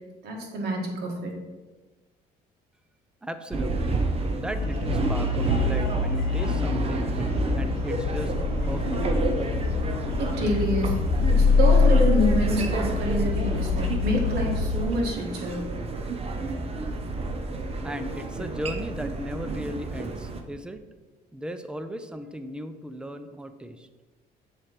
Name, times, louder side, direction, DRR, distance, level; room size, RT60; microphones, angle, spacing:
voice 1, 0.2-1.3 10.2-11.0 11.4-15.6, equal, 75° right, 0 dB, 1.7 m, -27 dB
voice 2, 3.2-4.0 4.3-8.3 8.7-9.0 17.8-20.8 21.3-23.9, equal, 5° right, 9 dB, 0.5 m, -36 dB
sound 1, 3.5-20.4, right 2 dB, 35° right, 0.8 m, -30 dB
sound 2, 4.6-14.8, left 4 dB, 60° left, 0.9 m, -25 dB
7.5 x 3.3 x 5.9 m, 1.3 s
cardioid pair, 110°, 17 cm